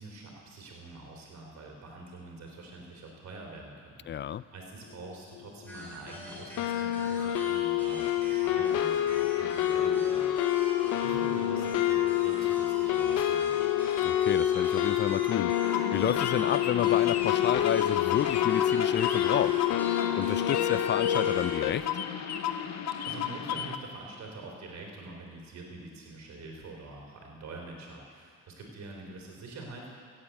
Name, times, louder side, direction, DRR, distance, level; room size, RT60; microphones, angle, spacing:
voice 1, 0.0-13.9 22.3-22.5 23.1-29.9, right 2 dB, 65° right, 0 dB, 3.6 m, -46 dB
voice 2, 4.1-4.4 14.0-15.6 15.9-19.6 20.2-21.9, left 10 dB, 40° left, 18 dB, 0.4 m, -31 dB
sound 1, 5.4-5.5 5.7-6.1 6.6-21.7, left 11 dB, 85° left, 0.7 m, -27 dB
sound 2, 5.7-21.5, equal, 5° left, 4.1 m, -45 dB
sound 3, 15.6-23.8, left 9 dB, 60° left, 0.9 m, -34 dB
15.5 x 8.7 x 8.3 m, 2.3 s
cardioid pair, 90°, 30 cm